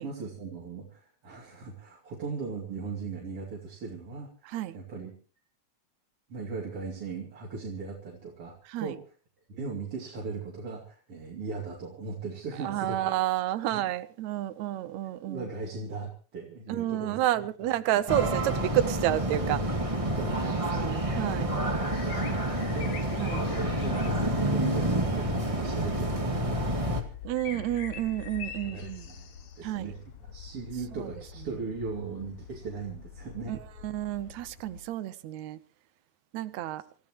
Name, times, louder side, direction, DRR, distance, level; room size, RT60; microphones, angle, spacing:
voice 1, 0.0-5.1 6.3-9.0 9.5-13.1 13.7-13.8 15.2-17.4 17.9-18.0 20.1-21.2 21.7-22.4 22.7-26.8 27.4-27.7 28.6-33.5, right 4 dB, 50° right, 3.5 m, -39 dB
voice 2, 4.5-4.8 8.7-9.0 12.6-15.5 16.7-19.6 20.4-21.5 23.2-23.4 27.2-29.1 29.6-29.9 30.9-31.1 33.5-35.6 36.3-36.8, right 13 dB, 75° right, 2.2 m, -30 dB
sound 1, 18.1-27.0, right 1 dB, 15° right, 1.6 m, -28 dB
sound 2, 20.5-34.8, left 7 dB, 70° left, 2.9 m, -45 dB
27.5 x 15.0 x 3.0 m
omnidirectional pair, 3.4 m